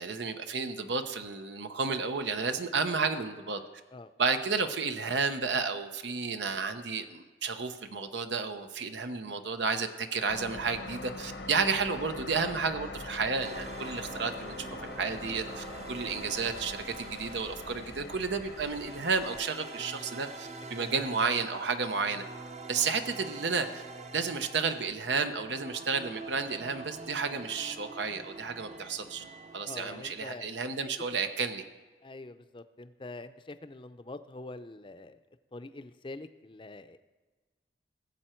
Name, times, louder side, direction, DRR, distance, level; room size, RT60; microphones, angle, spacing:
voice 1, 0.0-3.6 4.2-22.2 22.7-23.8 24.1-29.2 29.5-31.6, right 4 dB, 90° right, 8 dB, 0.8 m, -32 dB
sound 1, 10.3-19.4, left 2 dB, 80° left, 1.0 m, -43 dB
sound 2, 13.4-30.1, right 3 dB, 40° right, 0.8 m, -45 dB
voice 2, 20.8-21.1 29.7-30.4 31.1-31.3 32.0-35.2 35.5-37.0, left 2 dB, 30° left, 11 dB, 0.5 m, -45 dB
19.5 x 7.8 x 4.5 m, 1.3 s
head